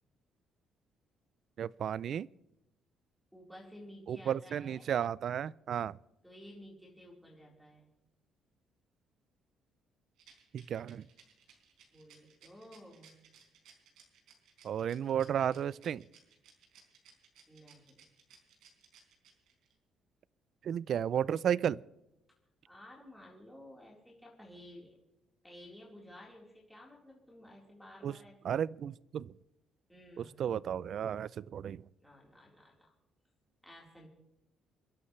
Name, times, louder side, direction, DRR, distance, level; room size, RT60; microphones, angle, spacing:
voice 1, 1.6-2.3 4.1-6.0 10.5-11.0 14.6-16.0 20.6-21.8 28.0-28.1 28.4-29.3 30.2-31.8, right 9 dB, 55° right, 0.4 m, -33 dB
voice 2, 3.3-4.9 6.2-7.9 11.9-13.2 17.5-18.0 22.7-25.0 25.4-28.4 29.9-30.4 32.0-32.9 33.6-34.1, left 1 dB, ahead, 4.1 m, -54 dB
Rattle, 10.2-19.7, right 8 dB, 80° right, 4.5 m, -61 dB
29.0 x 11.5 x 3.3 m
cardioid pair, 120°, 0 cm